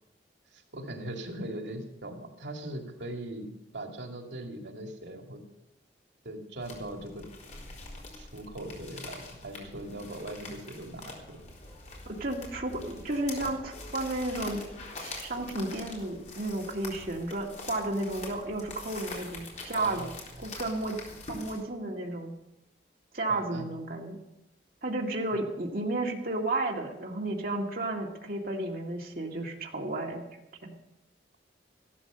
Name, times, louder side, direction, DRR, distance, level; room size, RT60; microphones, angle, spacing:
voice 1, 0.5-3.5 3.7-5.4 6.2-7.3 8.2-11.4 19.7-20.2 23.3-23.7, right 1 dB, 85° right, 3 dB, 2.3 m, -40 dB
sound 1, 6.6-21.6, left 2 dB, 40° left, 3.9 m, -44 dB
voice 2, 12.1-14.6 15.0-20.1 20.4-21.0 21.3-22.3 23.1-24.2 24.8-30.2 30.6-30.7, right 2 dB, 55° right, 0 dB, 2.0 m, -33 dB
14.5 x 13.0 x 6.8 m, 0.89 s
head